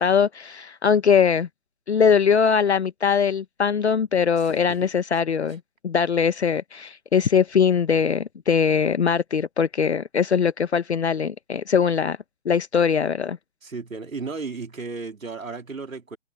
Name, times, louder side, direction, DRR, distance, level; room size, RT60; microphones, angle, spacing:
voice 1, 0.0-1.5 1.9-12.2 12.4-13.4, left 6 dB, 55° left, 1.0 m, -21 dB
voice 2, 4.4-4.9 13.6-16.2, right 4 dB, 90° right, 3.6 m, -34 dB
open air
hypercardioid pair, 170°, 39 cm